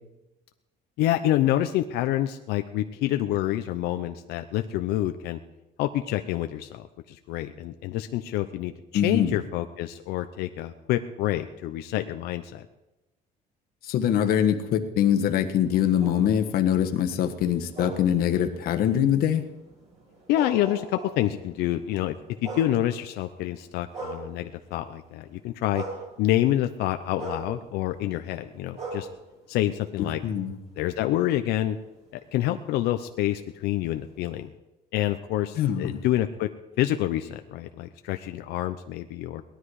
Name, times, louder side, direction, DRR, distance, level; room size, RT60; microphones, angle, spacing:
voice 1, 1.0-5.4 5.8-12.6 20.3-22.2 22.4-25.8 26.2-29.1 29.5-30.2 30.8-31.8 32.1-34.5 34.9-36.5 36.8-39.4, left 13 dB, 80° left, 7 dB, 0.7 m, -27 dB
voice 2, 8.9-9.4 13.8-19.4 30.0-30.5 35.6-36.0, left 9 dB, 65° left, 6 dB, 1.4 m, -23 dB
sound 1, 15.6-24.9 25.2-30.4 30.9-34.5, right 2 dB, 40° right, 5.9 m, -42 dB
18.5 x 12.5 x 4.9 m, 1.0 s
cardioid pair, 145°, 17 cm